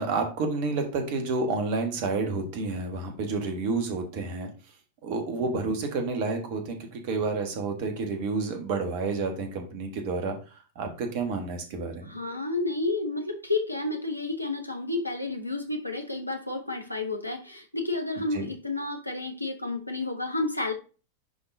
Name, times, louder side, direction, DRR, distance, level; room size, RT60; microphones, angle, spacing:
voice 1, 0.0-4.5 5.0-10.4 10.7-12.1 18.3-18.5, right 3 dB, 45° right, 5 dB, 1.6 m, -30 dB
voice 2, 12.0-20.7, left 2 dB, 90° left, 5 dB, 1.2 m, -31 dB
10.0 x 4.0 x 2.7 m, 0.34 s
figure-of-eight pair, 90°, 0 cm